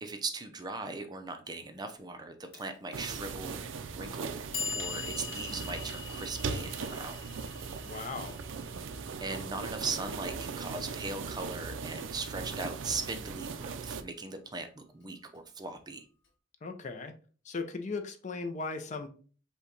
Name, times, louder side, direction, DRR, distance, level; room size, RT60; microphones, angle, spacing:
voice 1, 0.0-3.6 3.9-4.4 4.7-7.2 9.2-16.0, right 3 dB, 20° right, 7 dB, 0.5 m, -39 dB
Clock, 2.5-2.6 3.6-3.7 4.2-10.3, left 6 dB, 65° left, 1.0 m, -43 dB
sound 1, 2.9-14.0, right 5 dB, 75° right, 0.4 m, -39 dB
voice 2, 7.8-8.4 16.6-17.1 17.4-19.1, left 3 dB, 40° left, 6 dB, 0.5 m, -37 dB
5.4 x 2.2 x 3.8 m, 0.40 s
head